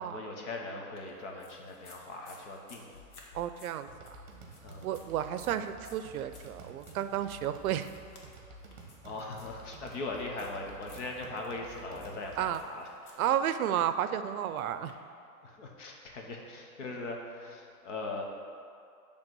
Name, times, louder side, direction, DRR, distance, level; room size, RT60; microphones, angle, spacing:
voice 1, 0.0-2.9 4.6-4.9 9.0-13.2 15.4-18.2, left 2 dB, 55° left, 0 dB, 1.2 m, -40 dB
sound 1, 0.9-14.9, left 3 dB, 85° left, 1.6 m, -59 dB
voice 2, 3.3-4.2 4.8-7.9 12.4-12.6 13.2-14.9, right 10 dB, 75° right, 11 dB, 0.5 m, -32 dB
sound 2, 3.9-12.6, right 2 dB, 35° right, 1.0 m, -51 dB
7.9 x 3.5 x 6.1 m, 2.4 s
supercardioid pair, 180°, 43 cm